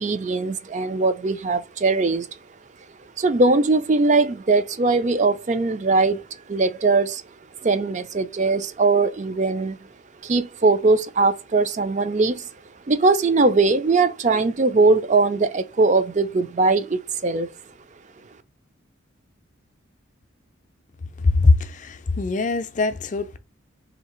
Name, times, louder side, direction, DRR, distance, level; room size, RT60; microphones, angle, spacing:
voice 1, 0.0-2.3 3.2-6.2 6.5-7.2 7.6-9.8 10.2-12.5 12.9-17.5, right 3 dB, 35° right, 0.4 m, -20 dB
voice 2, 21.2-23.4, left 3 dB, 40° left, 0.4 m, -21 dB
3.2 x 2.8 x 4.3 m
head